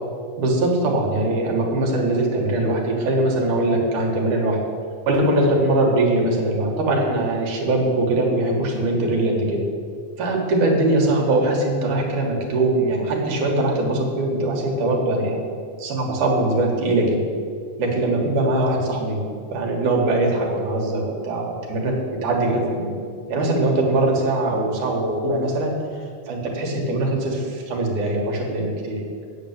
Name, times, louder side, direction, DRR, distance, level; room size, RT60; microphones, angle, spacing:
voice 1, 0.4-4.6 5.1-9.7 10.2-15.4 15.8-17.3 17.8-23.0 23.3-25.7 26.3-29.0, right 2 dB, 85° right, 0 dB, 3.3 m, -21 dB
9.2 x 7.0 x 8.7 m, 2.3 s
omnidirectional pair, 3.4 m